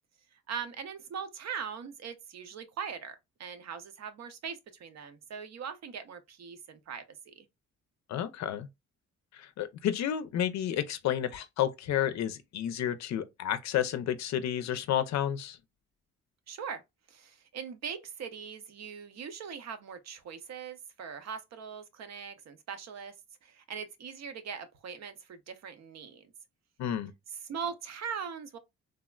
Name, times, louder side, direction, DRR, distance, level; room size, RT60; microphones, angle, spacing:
voice 1, 0.3-7.5 16.5-16.8 17.1-23.1 23.4-26.3 27.5-28.6, right 7 dB, 60° right, 0.7 m, -41 dB
voice 2, 8.1-8.7 9.4-15.6 26.8-27.1, left 10 dB, 65° left, 0.5 m, -31 dB
3.4 x 2.1 x 2.3 m
cardioid pair, 90°, 30 cm